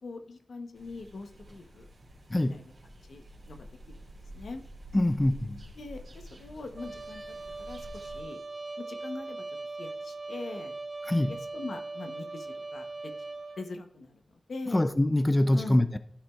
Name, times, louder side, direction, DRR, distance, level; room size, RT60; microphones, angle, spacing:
voice 1, 0.0-1.9 2.5-2.6 3.1-3.6 3.9-4.0 4.3-4.6 5.8-7.2 7.6-8.4 8.8-9.4 9.8-10.8 11.3-13.1 13.6-14.2 14.5-14.9 15.5-15.8, left 3 dB, 70° left, 0.8 m, -42 dB
sound 1, 0.7-8.2, equal, 55° right, 2.6 m, -49 dB
voice 2, 4.9-5.6 11.1-11.3 14.7-16.0, left 1 dB, 20° left, 0.4 m, -24 dB
Trumpet, 6.8-13.6, right 3 dB, 40° right, 3.2 m, -40 dB
12.5 x 5.9 x 2.3 m
cardioid pair, 65°, 0 cm